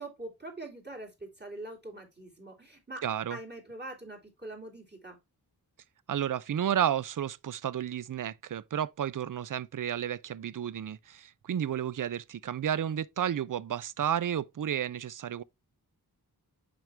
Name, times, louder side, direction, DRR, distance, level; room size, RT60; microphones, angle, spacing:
voice 1, 0.0-3.0 3.3-5.2, right 2 dB, 25° right, 2.6 m, -43 dB
voice 2, 3.0-3.4 6.1-15.4, right 9 dB, 55° right, 0.4 m, -32 dB
6.1 x 5.1 x 3.3 m
wide cardioid pair, 60°, 39 cm